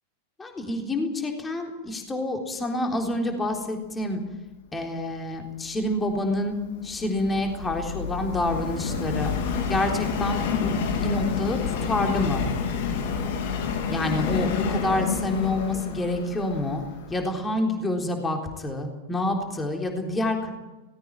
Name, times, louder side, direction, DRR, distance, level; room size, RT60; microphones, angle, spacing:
voice 1, 0.4-4.2 4.7-6.6 6.8-9.3 9.7-12.4 13.9-16.8 17.1-20.5, left 1 dB, 15° left, 3 dB, 3.7 m, -28 dB
Subway metro underground, 5.9-17.2, left 6 dB, 50° left, 3.3 m, -29 dB
18.5 x 17.0 x 9.0 m, 1.1 s
figure-of-eight pair, 90°, 0 cm